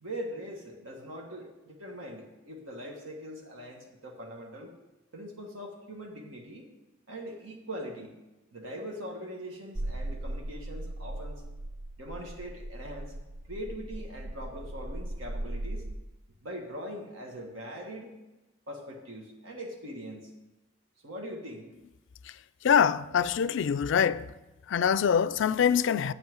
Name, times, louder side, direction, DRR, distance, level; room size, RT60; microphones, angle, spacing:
voice 1, 0.0-4.7 5.1-6.7 7.1-8.1 8.5-11.4 12.0-13.2 13.5-15.9 16.4-18.2 18.7-20.3 21.0-21.7, equal, 75° right, 1.5 m, -41 dB
sound 1, 9.8-15.9, right 1 dB, 45° right, 0.6 m, -38 dB
voice 2, 22.6-24.3 24.7-26.1, left 7 dB, 65° left, 0.3 m, -24 dB
8.7 x 5.5 x 7.9 m
head